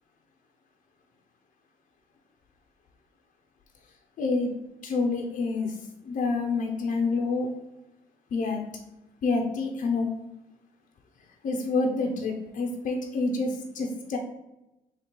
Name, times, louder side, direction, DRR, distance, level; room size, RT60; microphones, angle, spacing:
voice 1, 4.2-4.5 4.8-5.8 6.0-7.5 8.3-8.6 9.2-10.1 11.4-14.2, left 3 dB, 55° left, 3 dB, 0.5 m, -27 dB
2.8 x 2.8 x 4.3 m, 0.95 s
supercardioid pair, 55°, 16 cm